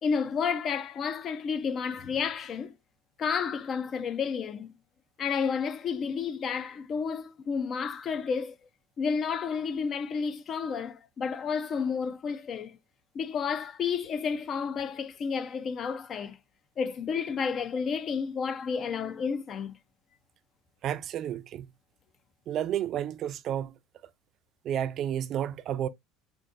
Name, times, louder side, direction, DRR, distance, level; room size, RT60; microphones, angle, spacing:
voice 1, 0.0-2.7 3.2-4.7 5.2-8.6 9.0-12.8 13.1-16.4 16.8-19.8, left 6 dB, 35° left, 0.4 m, -31 dB
voice 2, 20.8-21.7 22.5-23.7 24.6-25.9, right 10 dB, 45° right, 0.4 m, -31 dB
5.1 x 2.5 x 2.4 m
cardioid pair, 130°, 0 cm